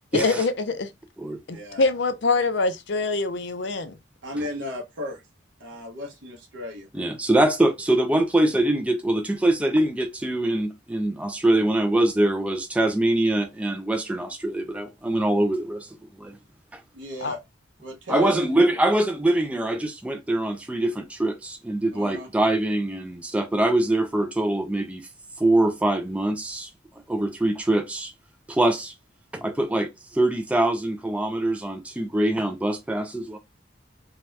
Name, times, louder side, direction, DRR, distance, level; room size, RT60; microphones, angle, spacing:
voice 1, 0.1-0.9 1.5-4.0 17.2-17.3, left 3 dB, 60° left, 0.5 m, -24 dB
voice 2, 4.2-5.2 5.6-6.9 16.9-17.4 17.8-18.4 21.9-22.3, left 2 dB, 70° right, 0.8 m, -34 dB
voice 3, 6.9-15.9 16.2-16.4 18.1-25.1 25.4-26.7 27.1-28.1 28.5-28.9 29.3-33.4, right 1 dB, 5° right, 0.3 m, -23 dB
2.7 x 2.3 x 3.1 m
head